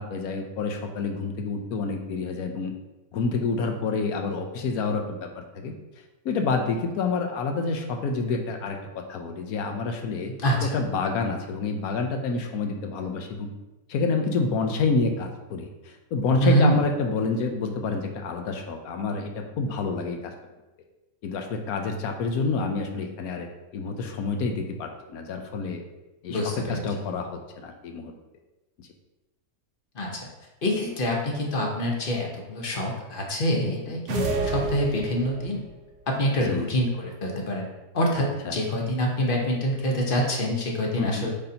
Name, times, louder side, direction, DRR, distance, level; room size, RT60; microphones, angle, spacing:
voice 1, 0.0-2.7 3.1-5.7 6.2-10.3 10.6-13.5 13.9-20.3 21.2-23.5 23.7-25.8 26.2-28.1 28.8-28.9 33.9-34.0 36.4-36.7 38.4-38.6 41.0-41.3, left 4 dB, 65° left, 4 dB, 1.1 m, -28 dB
voice 2, 10.4-10.8 16.4-16.8 26.3-26.8 29.9-30.3 30.6-35.6 36.1-37.7 37.9-41.3, equal, 40° left, 0 dB, 1.0 m, -25 dB
sound 1, 34.1-35.6, right 3 dB, 70° right, 1.4 m, -29 dB
8.6 x 4.0 x 2.8 m, 1.0 s
omnidirectional pair, 1.8 m